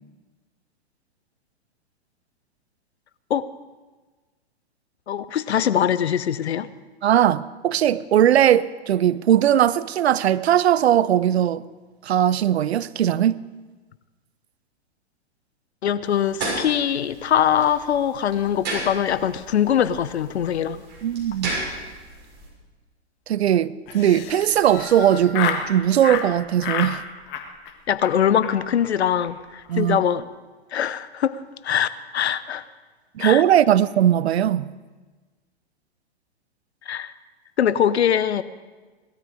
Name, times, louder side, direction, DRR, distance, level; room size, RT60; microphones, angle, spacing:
voice 1, 5.1-6.7 15.8-20.8 27.9-30.3 30.7-32.6 33.2-33.4 36.9-37.1 37.6-38.4, left 9 dB, 80° left, 0.8 m, -22 dB
voice 2, 7.0-11.6 12.0-13.4 21.0-21.5 23.3-27.0 29.7-30.0 33.1-34.7, right 10 dB, 75° right, 0.7 m, -19 dB
sound 1, 16.0-22.5, right 2 dB, 30° right, 6.7 m, -34 dB
Laughter, 23.9-25.7 26.0-26.3 26.6-26.9 27.3-27.7 28.0-28.1 28.4-28.5 28.8-28.9 29.1-29.3 29.6-29.9, left 8 dB, 35° left, 1.6 m, -30 dB
19.0 x 13.0 x 5.0 m
hypercardioid pair, 115°, 33 cm